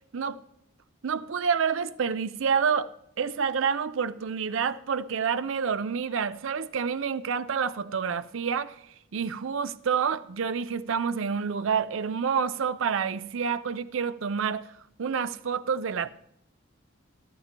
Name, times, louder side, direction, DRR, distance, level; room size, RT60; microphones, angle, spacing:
voice 1, 1.0-2.9 3.2-8.8 9.1-14.6 15.0-16.1, right 6 dB, 70° right, 0.5 m, -28 dB
13.5 x 13.0 x 2.9 m
head